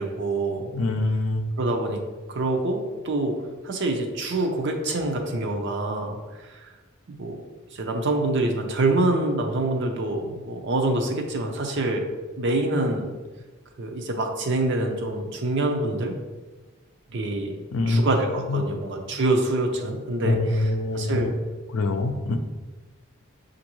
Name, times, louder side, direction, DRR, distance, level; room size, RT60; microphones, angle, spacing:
voice 1, 0.0-0.7 1.6-2.0 2.3-3.4 3.6-6.7 7.1-7.4 7.7-12.0 12.4-13.1 13.8-16.1 17.1-17.5 17.9-21.3, right 2 dB, 60° right, 3 dB, 0.6 m, -26 dB
voice 2, 0.7-1.5 17.7-18.0 18.5-18.6 20.2-21.3 21.7-22.4, left 2 dB, 70° left, 6 dB, 0.4 m, -24 dB
6.2 x 2.6 x 3.0 m, 1.3 s
head